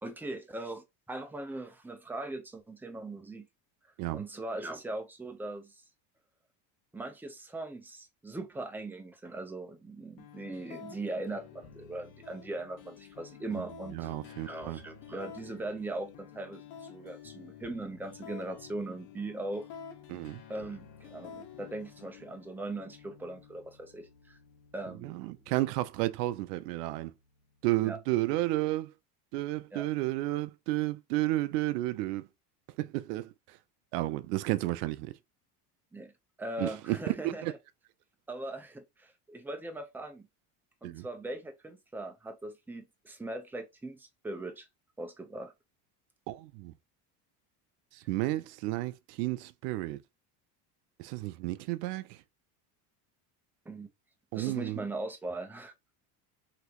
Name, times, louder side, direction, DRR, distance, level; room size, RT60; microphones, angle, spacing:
voice 1, 0.0-3.5 4.1-5.8 6.9-14.1 14.5-19.7 20.5-24.4 24.7-25.2 25.5-25.6 27.8-28.0 29.7-29.9 35.9-36.1 36.4-37.6 38.3-40.3 40.8-44.7 45.0-45.5 53.7-53.9 54.3-55.7, right 2 dB, 5° right, 0.7 m, -40 dB
sound 1, 10.2-28.1, left 7 dB, 85° left, 1.0 m, -51 dB
voice 2, 13.9-14.8 20.1-20.4 25.0-27.1 27.6-28.9 29.3-32.3 32.8-33.3 33.9-35.1 36.6-37.5 40.8-41.0 46.3-46.7 48.1-50.0 51.0-52.2 54.3-54.8, right 17 dB, 90° right, 0.6 m, -32 dB
3.1 x 3.0 x 2.9 m
supercardioid pair, 110°, 45 cm